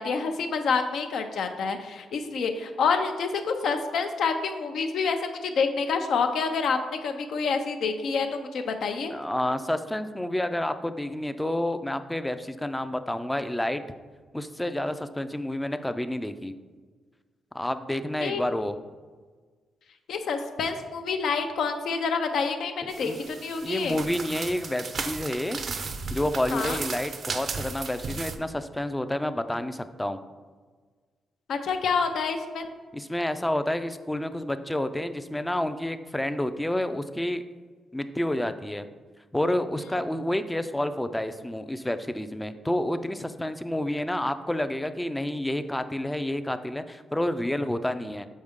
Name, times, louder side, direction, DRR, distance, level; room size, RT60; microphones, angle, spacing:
voice 1, 0.0-9.1 18.2-18.4 20.1-24.0 26.5-26.8 31.5-32.7, left 5 dB, 75° left, 6 dB, 0.6 m, -28 dB
voice 2, 9.1-13.8 14.3-16.5 17.5-18.8 22.8-23.2 23.6-25.6 26.1-30.2 32.9-37.4 37.9-38.9 39.3-48.3, left 1 dB, 10° left, 10 dB, 0.4 m, -29 dB
sound 1, 22.9-28.4, right 4 dB, 55° right, 0.5 m, -35 dB
6.4 x 4.4 x 3.6 m, 1.5 s
cardioid pair, 85°, 0 cm